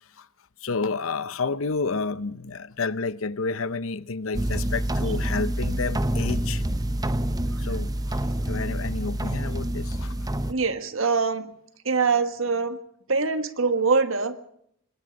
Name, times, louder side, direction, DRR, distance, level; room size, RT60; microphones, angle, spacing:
voice 1, 0.6-6.6 7.6-8.2 8.5-10.1, left 4 dB, 75° left, 0.7 m, -30 dB
sound 1, 4.3-10.5, right 1 dB, 20° right, 0.8 m, -27 dB
voice 2, 10.5-11.5 11.8-12.8 13.1-14.3, right 4 dB, 75° right, 1.6 m, -23 dB
26.0 x 20.0 x 5.3 m
head